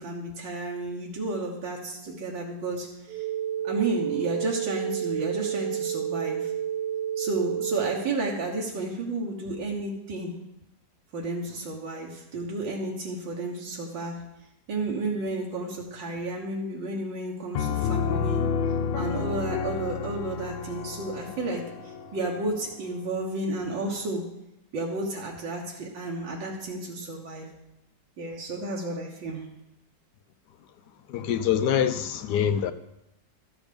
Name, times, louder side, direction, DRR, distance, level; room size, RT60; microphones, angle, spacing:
voice 1, 0.0-3.3 3.6-6.5 7.2-10.3 11.1-14.2 14.7-18.4 18.9-24.3 24.7-27.5 28.2-29.5, right 2 dB, 85° right, 2.1 m, -32 dB
sound 1, 3.1-8.1, right 9 dB, 65° right, 1.0 m, -30 dB
Piano, 17.5-23.1, left 6 dB, 90° left, 1.5 m, -30 dB
voice 2, 31.1-32.7, left 9 dB, 70° left, 1.1 m, -25 dB
13.0 x 7.1 x 5.2 m
omnidirectional pair, 2.0 m